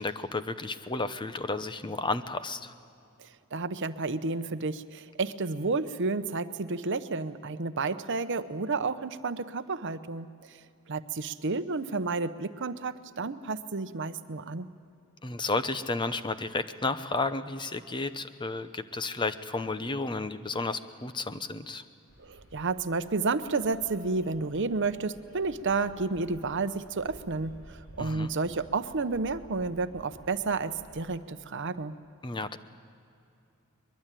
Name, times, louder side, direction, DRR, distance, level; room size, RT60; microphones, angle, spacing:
voice 1, 0.0-2.7 15.2-21.8 28.0-28.3 32.2-32.6, left 3 dB, 20° left, 11 dB, 0.8 m, -32 dB
voice 2, 3.2-10.3 10.9-14.7 22.2-32.0, right 3 dB, 60° right, 11 dB, 0.9 m, -31 dB
Bird vocalization bird call bird song, 22.1-31.1, equal, 85° left, 5.2 m, -54 dB
22.5 x 22.0 x 9.1 m, 2.7 s
head